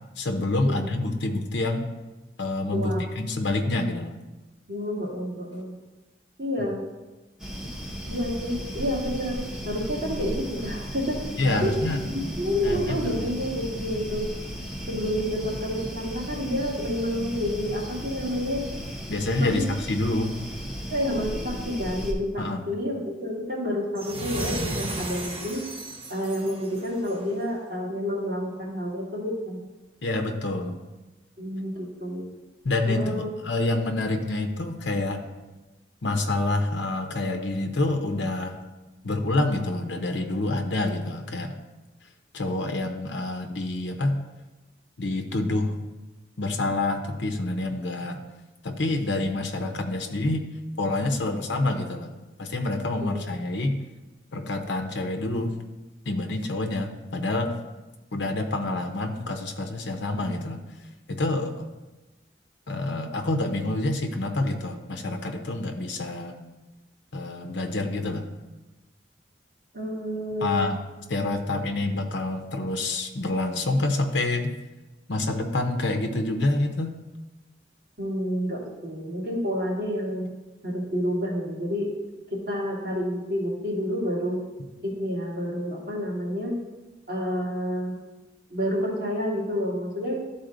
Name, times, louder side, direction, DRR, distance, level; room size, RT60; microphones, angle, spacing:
voice 1, 0.2-1.9 2.4-4.1 6.6-6.7 11.4-12.0 12.6-13.2 19.1-20.4 22.4-22.6 30.0-30.8 32.6-35.2 36.0-38.6 39.0-41.6 42.3-44.2 45.0-45.7 46.4-48.2 48.6-50.5 50.8-52.1 52.4-53.7 54.3-55.5 56.1-57.6 58.1-60.6 61.1-61.7 62.7-66.4 67.1-68.3 70.4-70.8 71.1-74.5 75.1-77.0, left 2 dB, 80° left, 4 dB, 0.8 m, -27 dB
voice 2, 2.7-3.0 4.7-5.7 6.4-6.8 8.1-11.8 12.1-14.3 14.9-18.6 19.4-19.7 20.9-25.7 26.1-29.6 31.4-32.2 32.9-33.3 69.7-70.7 78.0-80.3 80.6-81.9 82.3-84.4 84.8-86.6 87.1-87.9 88.5-90.2, equal, 50° right, -5 dB, 2.2 m, -29 dB
sound 1, 7.4-22.1, equal, 5° right, 0.9 m, -35 dB
sound 2, 23.9-27.3, right 2 dB, 30° right, 1.1 m, -34 dB
12.0 x 4.1 x 3.9 m, 1.1 s
head